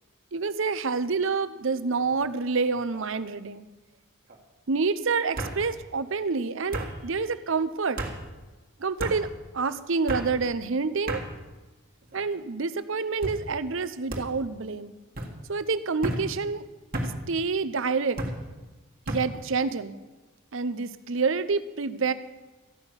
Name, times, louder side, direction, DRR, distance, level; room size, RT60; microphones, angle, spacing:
voice 1, 0.3-3.7 4.7-8.0 8.8-11.2 12.1-14.9 15.5-16.6 17.3-18.2 19.1-20.0 20.5-22.1, right 4 dB, 60° right, 13 dB, 0.7 m, -28 dB
sound 1, 1.9-2.3 2.7-3.2 4.3-4.4 5.4-5.6 6.7-6.9 8.0-8.2 9.0-9.2 10.1-10.3 11.1-11.3 12.0-12.4 13.2-13.4 14.1-14.3 15.1-15.3 16.0-16.2 16.9-17.1 18.2-18.4 19.1-19.3, right 1 dB, 45° right, 1.8 m, -32 dB
14.0 x 6.1 x 9.7 m, 1.2 s
head